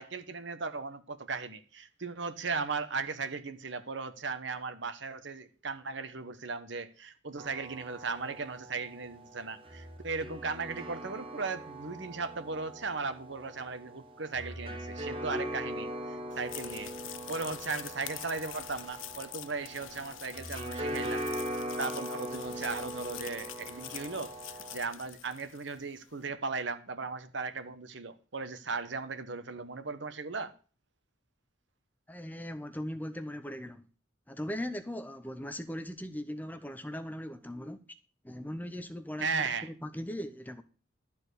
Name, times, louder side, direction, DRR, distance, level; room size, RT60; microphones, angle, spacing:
voice 1, 0.0-21.2 21.8-24.3 24.7-30.5 39.2-39.7, right 4 dB, 65° right, 1.1 m, -37 dB
sound 1, 7.4-24.8, right 1 dB, 25° right, 1.2 m, -41 dB
sound 2, 16.3-25.8, left 14 dB, 80° left, 0.5 m, -45 dB
voice 2, 32.1-33.8 34.3-37.8 38.2-40.6, equal, 10° left, 0.6 m, -39 dB
12.5 x 4.5 x 8.2 m
head